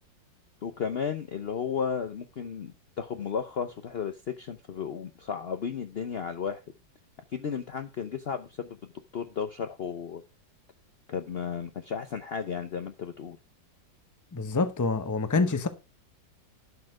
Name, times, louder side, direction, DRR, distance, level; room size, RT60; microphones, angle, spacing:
voice 1, 0.6-6.6 7.3-8.8 9.1-10.2 11.1-13.4, left 6 dB, 75° left, 0.5 m, -34 dB
voice 2, 14.3-15.7, left 3 dB, 20° left, 0.5 m, -26 dB
11.5 x 6.5 x 4.8 m
omnidirectional pair, 2.0 m